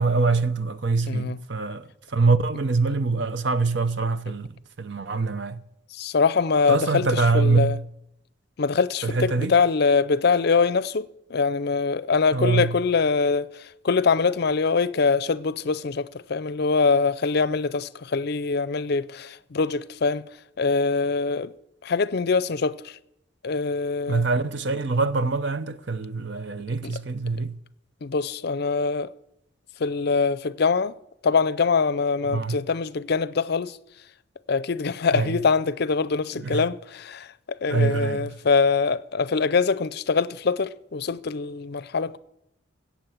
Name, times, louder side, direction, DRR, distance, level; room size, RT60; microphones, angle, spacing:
voice 1, 0.0-4.5 4.8-5.6 6.7-7.8 9.0-9.5 12.3-12.7 24.1-27.6 32.3-32.6 35.1-35.4 36.4-36.7 37.7-38.3, right 3 dB, 65° right, 0.7 m, -24 dB
voice 2, 1.1-1.4 5.9-7.8 8.6-20.2 20.6-21.5 21.8-23.0 23.4-24.2 26.8-26.9 28.0-29.1 29.8-30.9 31.2-33.8 34.5-37.3 37.6-42.2, left 4 dB, 55° left, 0.5 m, -23 dB
17.0 x 7.3 x 7.3 m
head